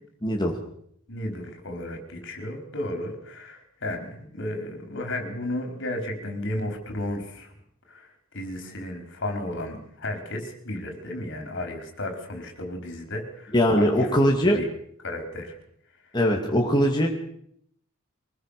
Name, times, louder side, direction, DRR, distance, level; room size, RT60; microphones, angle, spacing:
voice 1, 0.2-0.5 13.5-14.6 16.1-17.1, equal, 20° left, 1 dB, 2.5 m, -21 dB
voice 2, 1.1-7.5 7.9-14.7 15.0-15.6, left 1 dB, 60° left, 4 dB, 4.9 m, -33 dB
24.0 x 20.0 x 6.8 m, 0.70 s
head